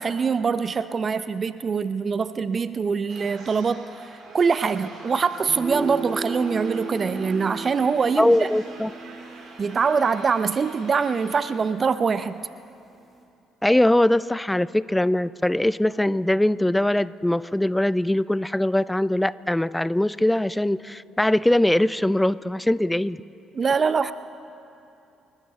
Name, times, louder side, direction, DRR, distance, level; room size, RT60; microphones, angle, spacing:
voice 1, 0.0-8.5 9.6-12.4 23.5-24.1, right 5 dB, 40° right, 13 dB, 0.6 m, -24 dB
sound 1, 3.1-11.5, right 3 dB, 60° right, 3.7 m, -45 dB
sound 2, 5.5-12.0, right 3 dB, 25° right, 2.0 m, -35 dB
voice 2, 8.2-8.9 13.6-23.2, left 1 dB, 10° left, 18 dB, 0.5 m, -21 dB
30.0 x 14.0 x 3.2 m, 2.7 s
hypercardioid pair, 50°, 0 cm